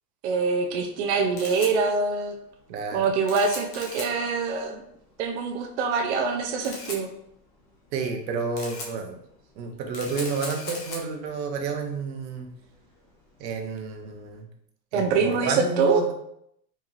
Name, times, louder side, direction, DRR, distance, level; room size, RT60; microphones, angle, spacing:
voice 1, 0.2-2.3 2.9-4.8 5.2-7.1 14.9-16.0, right 4 dB, 45° right, 2 dB, 0.5 m, -25 dB
Camera, 1.0-14.4, left 2 dB, 25° left, 0.5 m, -42 dB
voice 2, 2.7-3.0 7.9-9.2 9.6-12.5 13.4-14.5 14.9-16.1, right 5 dB, 85° right, 3 dB, 1.0 m, -30 dB
4.2 x 3.1 x 2.4 m, 0.75 s
supercardioid pair, 165°, 49 cm